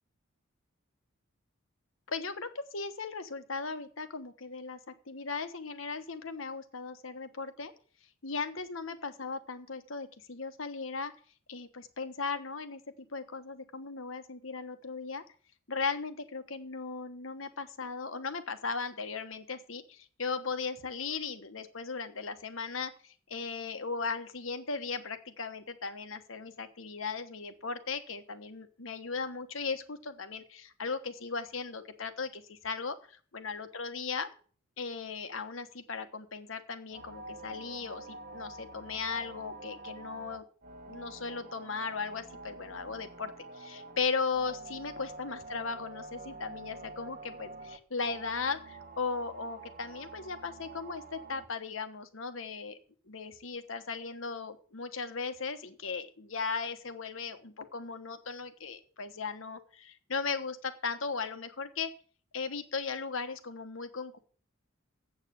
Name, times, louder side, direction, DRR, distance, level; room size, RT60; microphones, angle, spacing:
voice 1, 2.1-4.8 5.1-7.7 8.2-11.1 11.5-12.8 13.1-15.2 15.7-34.3 34.8-40.4 40.9-52.8 53.1-61.9 62.3-64.2, left 4 dB, 70° left, 9 dB, 1.2 m, -37 dB
sound 1, 36.9-51.5, right 2 dB, 40° right, 1.1 m, -47 dB
8.1 x 7.4 x 8.0 m, 0.43 s
head